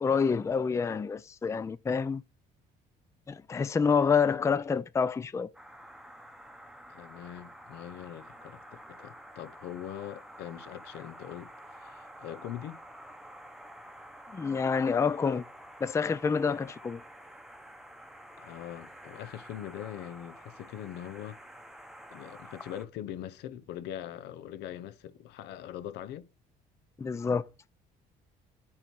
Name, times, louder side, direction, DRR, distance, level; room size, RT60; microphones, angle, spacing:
voice 1, 0.0-2.2 3.3-5.5 14.3-15.4 15.8-17.0 27.0-27.4, left 5 dB, 15° left, 0.4 m, -27 dB
sound 1, 5.5-22.9, equal, ahead, 0.8 m, -49 dB
voice 2, 6.9-12.8 18.4-21.4 22.1-26.3, left 11 dB, 80° left, 0.8 m, -42 dB
8.8 x 3.2 x 6.0 m
cardioid pair, 110°, 17 cm